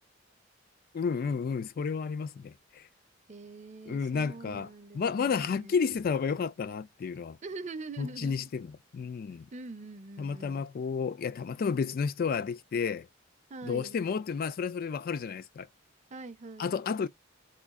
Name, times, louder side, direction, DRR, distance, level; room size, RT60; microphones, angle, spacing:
voice 1, 0.9-2.8 3.9-4.7 4.9-7.4 8.0-8.7 8.9-9.5 10.2-13.1 13.7-15.7 16.6-17.1, left 5 dB, 50° left, 0.3 m, -31 dB
voice 2, 3.3-5.8 7.4-8.5 9.5-10.6 13.5-14.0 16.1-16.8, right 3 dB, 40° right, 0.5 m, -44 dB
3.1 x 2.4 x 3.5 m
head